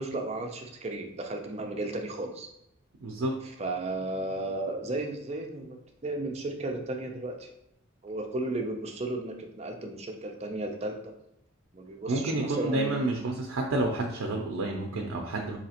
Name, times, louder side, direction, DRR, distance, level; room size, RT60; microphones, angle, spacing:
voice 1, 0.0-2.5 3.6-5.8 6.0-7.5 8.0-11.0 11.7-13.0, right 2 dB, 30° right, 3 dB, 0.5 m, -34 dB
voice 2, 3.0-3.3 12.1-15.6, right 2 dB, 90° right, 1 dB, 0.5 m, -29 dB
4.0 x 2.8 x 2.8 m, 0.82 s
head